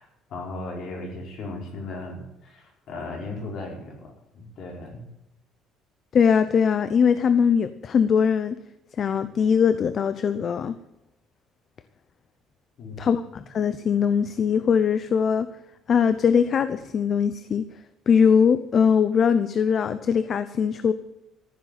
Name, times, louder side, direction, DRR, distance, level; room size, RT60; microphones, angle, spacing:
voice 1, 0.0-5.0 12.8-13.2, left 2 dB, 55° left, 0 dB, 5.0 m, -37 dB
voice 2, 6.1-8.6 9.0-10.8 13.0-15.5 15.9-17.7 18.1-20.9, left 7 dB, 35° left, 12 dB, 0.7 m, -21 dB
14.5 x 7.4 x 9.4 m, 0.90 s
cardioid pair, 155°, 0 cm